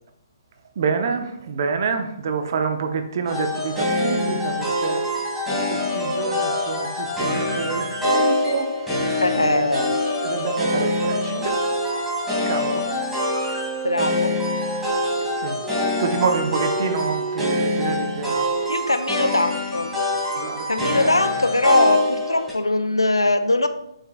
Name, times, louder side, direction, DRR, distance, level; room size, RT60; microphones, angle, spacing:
voice 1, 0.8-5.0 5.5-8.8 9.4-9.9 10.2-11.6 12.5-12.9 15.4-15.6 16.0-18.5 20.3-20.7 21.0-21.1, right 5 dB, 50° right, 7 dB, 0.8 m, -27 dB
sound 1, 3.3-22.5, left 1 dB, 5° right, 2.4 m, -25 dB
voice 2, 9.1-9.9 13.8-14.4 18.7-19.9 20.7-23.7, left 2 dB, 90° left, 9 dB, 0.5 m, -21 dB
sound 2, 12.9-14.9 15.6-17.6 18.4-18.6, right 6 dB, 20° right, 1.9 m, -31 dB
8.2 x 6.3 x 2.4 m, 0.78 s
figure-of-eight pair, 130°, 2 cm